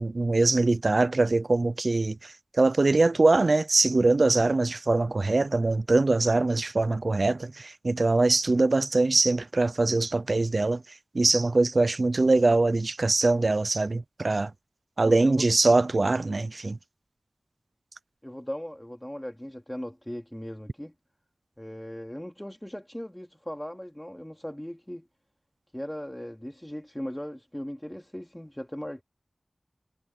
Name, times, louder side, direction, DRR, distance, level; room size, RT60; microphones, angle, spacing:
voice 1, 0.0-10.8 11.1-14.5 15.0-16.8, right 3 dB, 55° right, 0.7 m, -23 dB
voice 2, 15.0-15.5 18.2-20.9 21.6-25.1 25.7-29.0, equal, 10° left, 3.6 m, -38 dB
wide cardioid pair, 75°, 0 cm